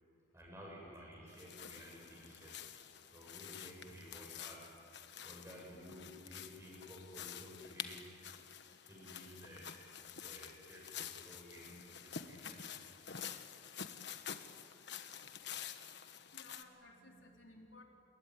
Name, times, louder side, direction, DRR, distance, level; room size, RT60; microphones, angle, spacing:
voice 1, 0.3-2.6 3.1-4.7 5.2-8.1 8.7-9.7 10.0-12.7, equal, 15° right, -3 dB, 7.6 m, -54 dB
sound 1, 1.3-16.6, left 8 dB, 60° left, 1.3 m, -49 dB
voice 2, 16.3-17.8, left 2 dB, 75° left, 1 dB, 4.0 m, -58 dB
28.0 x 22.5 x 9.5 m, 2.3 s
head